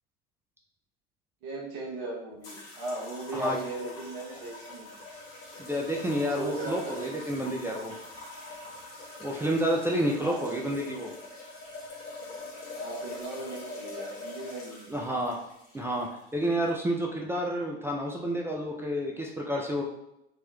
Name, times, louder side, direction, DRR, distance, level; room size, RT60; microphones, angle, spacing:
voice 1, 1.4-5.0 6.3-7.1 10.2-10.8 12.7-14.9, right 2 dB, 65° right, -3 dB, 0.9 m, -37 dB
sound 1, 2.4-16.7, left 2 dB, 50° left, 1.1 m, -43 dB
voice 2, 5.6-7.9 9.2-11.1 14.9-15.4 15.7-19.8, equal, 10° right, -2 dB, 0.3 m, -30 dB
3.1 x 2.9 x 2.2 m, 0.85 s
hypercardioid pair, 75°, 32 cm